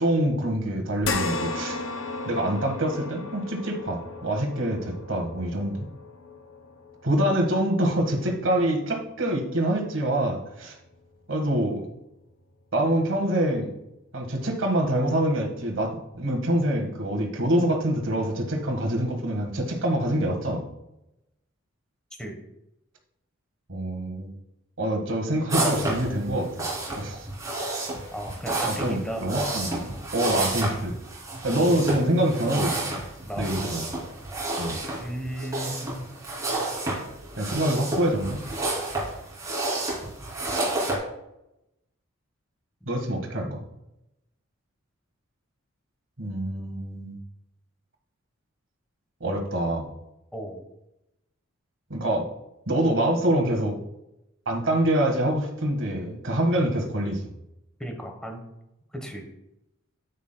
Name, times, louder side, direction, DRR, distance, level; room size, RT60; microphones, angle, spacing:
voice 1, 0.0-1.8 2.2-5.9 7.0-10.7 11.3-11.9 12.7-13.7 14.1-20.7 23.7-24.3 24.8-26.7 27.0-27.3 28.6-31.0 31.4-32.9 33.4-33.8 34.6-34.8 37.4-38.4 42.8-43.6 46.2-47.2 49.2-49.9 51.9-52.3 52.7-53.8 54.4-57.3, right 1 dB, 60° right, 2 dB, 1.6 m, -25 dB
sound 1, 1.0-9.6 10.1-10.2 11.6-11.7, left 3 dB, 65° left, 0.7 m, -35 dB
sound 2, 25.5-41.0, right 2 dB, 15° right, 2.8 m, -30 dB
voice 2, 28.1-29.2 31.5-31.9 33.2-33.5 34.3-34.4 35.0-36.0 42.8-43.5 50.3-50.6 57.8-58.4 58.9-59.3, right 1 dB, 5° left, 2 dB, 1.1 m, -35 dB
9.4 x 8.4 x 2.2 m, 0.87 s
head